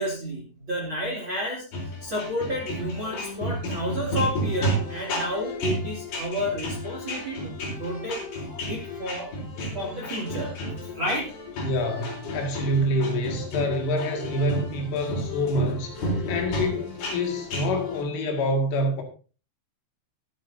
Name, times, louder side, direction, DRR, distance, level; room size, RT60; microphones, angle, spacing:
voice 1, 0.0-1.6 2.0-7.5 7.8-8.2 8.7-9.3 9.7-10.5 10.9-11.3 12.8-12.9 16.5-16.6, equal, 30° right, 2.7 m, -31 dB
sound 1, 1.7-18.0, equal, 50° left, 5.8 m, -32 dB
voice 2, 11.6-19.0, equal, 75° left, 4.7 m, -26 dB
21.0 x 8.2 x 2.8 m
omnidirectional pair, 5.7 m